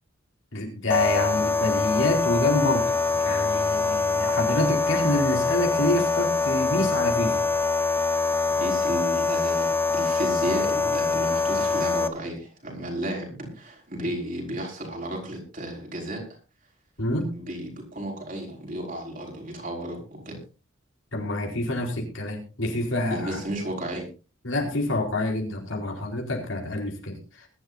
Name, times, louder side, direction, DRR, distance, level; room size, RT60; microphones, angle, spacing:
voice 1, 0.5-2.9 3.2-7.5 17.0-17.3 21.1-23.4 24.4-27.5, left 1 dB, 70° left, 1 dB, 4.4 m, -27 dB
sound 1, 0.9-12.1, left 4 dB, 10° left, 0.8 m, -24 dB
voice 2, 8.6-16.2 17.3-20.4 23.1-24.1, right 1 dB, 40° right, 0 dB, 5.6 m, -33 dB
21.5 x 12.5 x 2.7 m, 0.34 s
head